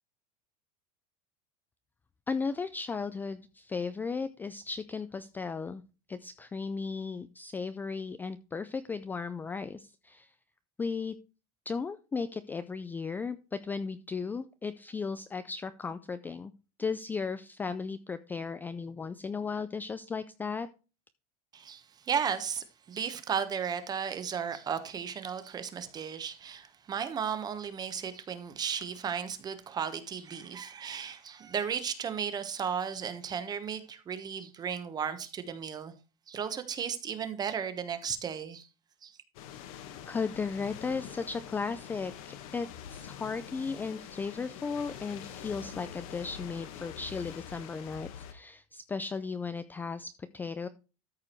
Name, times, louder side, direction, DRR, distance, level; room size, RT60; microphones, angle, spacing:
voice 1, 2.3-5.8 6.1-10.3 10.8-11.2 11.7-16.5 16.8-20.7 40.1-50.7, left 5 dB, 10° left, 0.4 m, -36 dB
voice 2, 21.5-35.9 36.3-38.7 39.0-39.1, right 7 dB, 20° right, 1.2 m, -35 dB
sound 1, 39.3-48.3, left 9 dB, 75° left, 1.7 m, -45 dB
13.5 x 4.9 x 4.5 m
supercardioid pair, 155°, 18 cm